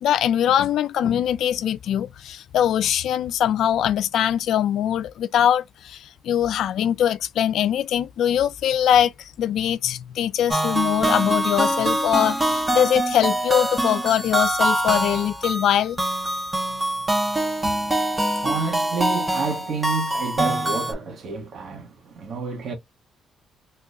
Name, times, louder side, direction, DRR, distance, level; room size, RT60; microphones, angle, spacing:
voice 1, 0.0-16.0, left 10 dB, 75° left, 0.3 m, -22 dB
sound 1, 10.5-20.9, right 1 dB, 20° right, 1.2 m, -24 dB
voice 2, 17.6-22.7, right 5 dB, 55° right, 1.4 m, -30 dB
3.0 x 2.3 x 3.7 m
cardioid pair, 90°, 0 cm